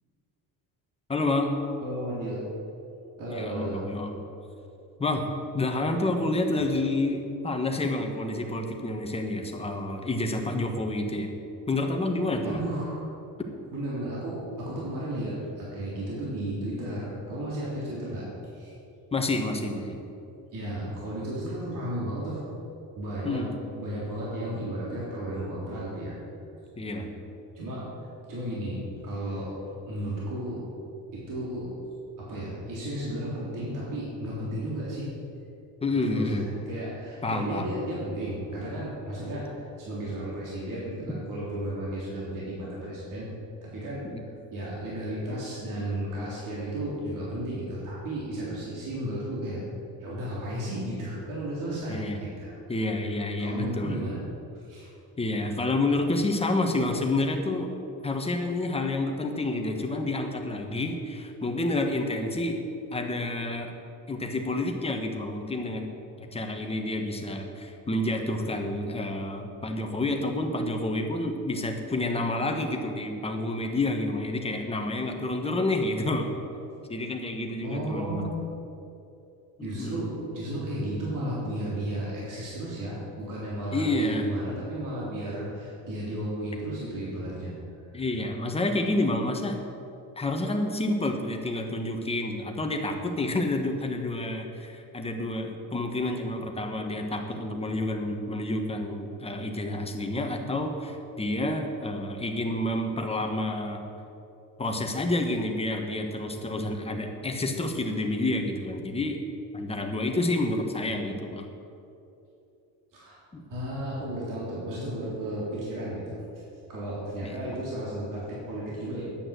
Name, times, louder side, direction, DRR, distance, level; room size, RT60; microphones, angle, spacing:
voice 1, 1.1-1.5 3.3-4.1 5.0-5.2 5.5-11.3 11.7-12.6 19.1-20.0 23.2-23.5 26.8-27.1 35.8-36.4 37.2-37.7 44.0-44.2 51.9-52.2 52.7-54.0 55.2-57.7 58.0-62.6 62.9-63.7 64.1-65.9 66.3-76.3 76.9-78.2 79.6-80.0 83.7-84.3 87.9-89.6 90.2-103.8 104.6-109.2 109.5-111.4 113.3-113.4 117.2-117.4, left 2 dB, 15° left, 3 dB, 1.3 m, -29 dB
voice 2, 1.8-2.4 3.2-3.9 12.4-13.1 13.7-18.3 18.5-18.7 20.5-22.4 22.9-23.4 23.7-26.2 26.9-27.0 27.5-27.9 28.3-29.6 29.9-30.6 31.1-31.7 32.2-35.1 36.0-43.3 43.6-49.6 50.0-52.8 53.4-54.2 54.6-54.9 77.6-78.3 79.6-87.5 87.9-88.0 112.9-113.2 113.5-116.4 116.7-119.0, right 1 dB, 55° right, -7 dB, 3.7 m, -34 dB
11.0 x 8.7 x 7.8 m, 2.8 s
cardioid pair, 150°, 38 cm